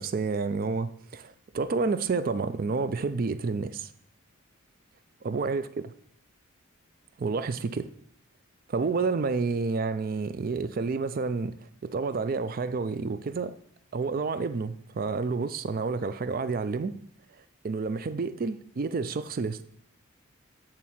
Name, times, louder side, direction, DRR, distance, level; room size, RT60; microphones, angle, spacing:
voice 1, 0.0-3.9 5.2-5.9 7.2-7.9 8.7-11.6 11.8-13.5 13.9-16.9 17.6-19.6, right 4 dB, 40° right, 0.3 m, -29 dB
8.9 x 3.6 x 4.3 m
head